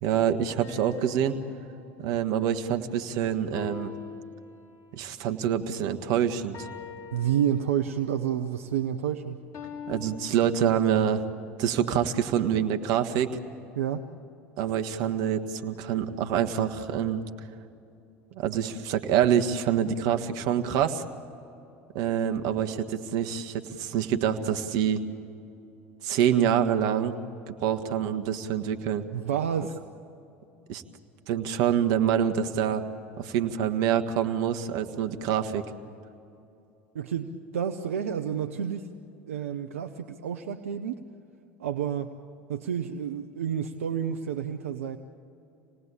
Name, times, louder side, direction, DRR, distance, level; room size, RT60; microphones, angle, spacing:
voice 1, 0.0-1.4 2.0-3.9 4.9-6.7 9.9-11.2 11.6-13.4 14.6-17.2 18.3-21.0 21.9-25.0 26.0-27.2 27.5-29.0 30.7-30.8 31.3-32.8 33.2-35.6, right 9 dB, 60° right, 7 dB, 1.5 m, -26 dB
sound 1, 0.6-2.4 3.5-5.0 6.5-8.1 9.5-10.6, left 7 dB, 50° left, 4.1 m, -43 dB
voice 2, 7.1-9.4 13.7-14.0 29.1-29.8 36.9-38.9 39.3-41.0 41.6-42.1 42.5-45.0, right 9 dB, 80° right, 7 dB, 0.8 m, -29 dB
27.5 x 19.0 x 8.5 m, 2.8 s
hypercardioid pair, 75°, 7 cm